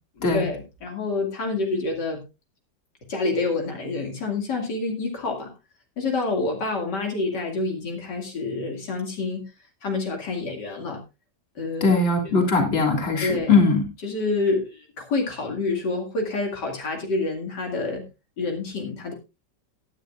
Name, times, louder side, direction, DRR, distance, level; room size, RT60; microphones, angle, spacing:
voice 1, 0.2-2.2 3.1-5.5 6.0-9.4 9.8-11.0 11.6-12.3 13.2-13.5 14.0-18.0 18.4-19.1, left 3 dB, 75° left, 2 dB, 2.8 m, -28 dB
voice 2, 11.8-13.9, left 3 dB, 35° left, 2 dB, 2.6 m, -20 dB
17.0 x 9.8 x 2.4 m, 0.26 s
omnidirectional pair, 1.9 m